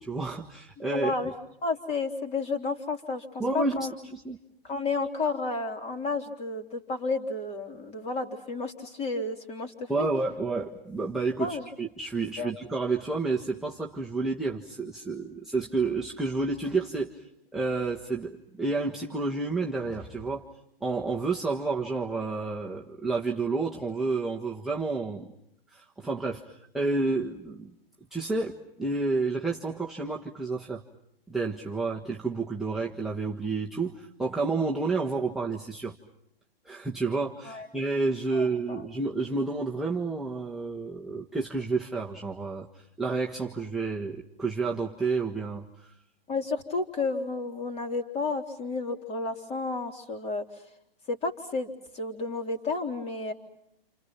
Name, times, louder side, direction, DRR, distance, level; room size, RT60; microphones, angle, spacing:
voice 1, 0.0-1.3 3.4-4.4 9.9-20.4 20.8-25.3 25.7-27.7 28.1-30.8 31.3-35.9 36.6-45.9, right 3 dB, ahead, -3 dB, 1.5 m, -30 dB
voice 2, 0.9-1.3 1.6-3.9 4.6-10.1 11.4-11.6 12.4-12.5 37.4-37.7 38.3-38.8 46.3-50.4 51.1-53.3, left 3 dB, 20° left, 5 dB, 3.7 m, -31 dB
29.0 x 29.0 x 5.9 m, 0.76 s
hypercardioid pair, 130°, 30 cm